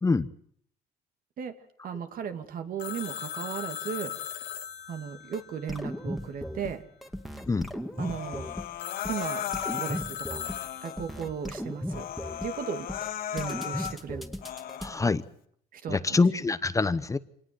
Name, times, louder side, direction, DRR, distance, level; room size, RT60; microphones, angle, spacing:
voice 1, 1.8-4.1 4.9-6.8 8.0-8.5 9.1-10.4 10.8-12.1 12.4-12.9 13.3-14.3 15.7-16.2, right 7 dB, 55° right, 8 dB, 2.5 m, -36 dB
Telephone, 2.8-6.4 8.8-11.3, left 11 dB, 80° left, 1.8 m, -39 dB
sound 1, 5.3-5.4 5.7-6.7 7.0-8.6 9.0-9.2 9.5-10.6 10.8-12.5 12.9-13.1 13.4-14.9, equal, ahead, 2.1 m, -36 dB
Human voice, 7.9-10.0 10.4-11.1 11.5-11.6 11.9-14.0 14.4-15.0, left 10 dB, 60° left, 1.6 m, -36 dB
voice 2, 14.8-15.2 15.9-17.2, left 3 dB, 20° left, 13 dB, 0.9 m, -25 dB
26.0 x 19.0 x 7.7 m, 0.65 s
cardioid pair, 110°, 17 cm